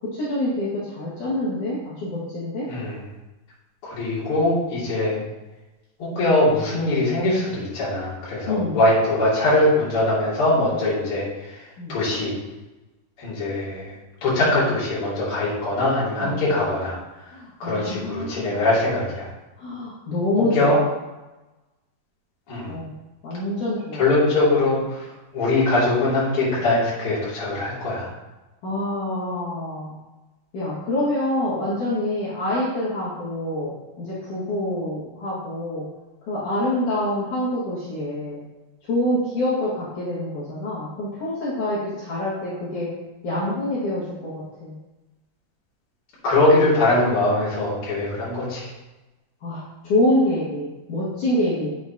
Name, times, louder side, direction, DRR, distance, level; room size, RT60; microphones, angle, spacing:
voice 1, 0.0-2.7 8.5-8.8 11.8-12.0 16.2-16.4 17.3-18.6 19.6-20.8 22.7-22.9 23.2-24.0 28.6-30.0 30.5-35.9 36.3-38.4 38.9-42.9 43.2-44.7 49.4-51.7, left 1 dB, 55° left, -10 dB, 3.3 m, -26 dB
voice 2, 2.7-3.0 3.8-5.2 6.0-12.3 13.2-13.9 14.2-17.3 17.6-19.3 20.4-20.8 22.5-22.7 24.0-28.1 46.2-48.7, left 2 dB, 40° left, -8 dB, 3.2 m, -22 dB
9.1 x 7.1 x 2.9 m, 1.1 s
omnidirectional pair, 4.5 m